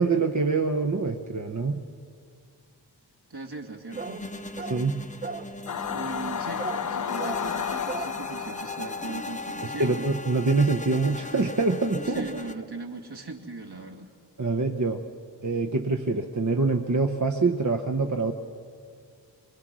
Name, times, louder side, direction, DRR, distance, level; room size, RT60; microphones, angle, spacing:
voice 1, 0.0-1.8 4.7-5.1 9.6-12.3 14.4-15.0 15.4-18.3, right 3 dB, 45° right, 4 dB, 1.0 m, -25 dB
voice 2, 3.3-4.3 5.9-10.1 12.0-14.1, right 3 dB, 65° right, 0 dB, 2.5 m, -39 dB
sound 1, 3.9-12.5, left 2 dB, 15° left, 1.0 m, -38 dB
sound 2, 4.0-4.3 4.6-4.9 5.2-5.5 6.6-6.9 7.2-7.5 7.9-8.1, right 4 dB, 20° right, 0.7 m, -35 dB
Singing / Musical instrument, 5.7-10.3, left 8 dB, 45° left, 0.5 m, -33 dB
23.5 x 22.5 x 6.2 m, 2.3 s
wide cardioid pair, 50°, 42 cm